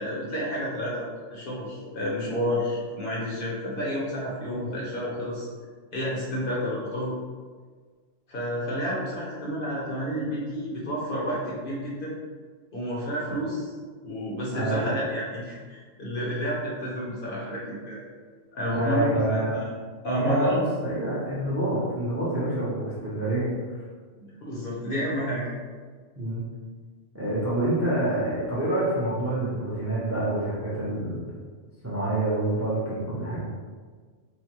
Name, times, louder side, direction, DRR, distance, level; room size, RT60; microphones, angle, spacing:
voice 1, 0.0-5.5 5.9-7.2 8.3-12.1 12.7-13.7 14.0-18.0 18.5-19.7 20.0-20.7 24.2-25.5, equal, 55° left, -5 dB, 0.7 m, -30 dB
voice 2, 14.5-15.0 18.7-19.6 20.1-23.5 26.2-26.4 27.1-31.3 31.8-33.4, right 1 dB, 20° right, -8 dB, 0.5 m, -27 dB
3.2 x 2.1 x 2.9 m, 1.5 s
omnidirectional pair, 1.3 m